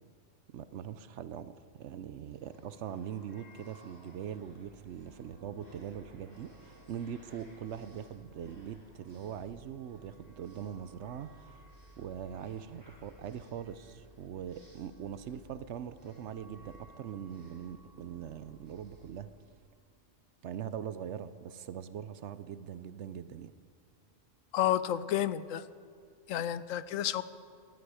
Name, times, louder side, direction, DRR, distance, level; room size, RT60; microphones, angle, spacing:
voice 1, 0.5-11.5 12.0-19.3 20.4-23.5, right 9 dB, 70° right, 13 dB, 0.9 m, -42 dB
sound 1, 2.3-19.9, right 1 dB, 20° right, 3.5 m, -60 dB
sound 2, 4.4-19.3, equal, 25° left, 3.9 m, -60 dB
voice 2, 24.5-25.6 26.3-27.2, left 11 dB, 80° left, 15 dB, 1.0 m, -30 dB
18.5 x 11.5 x 4.9 m, 2.2 s
omnidirectional pair, 1.3 m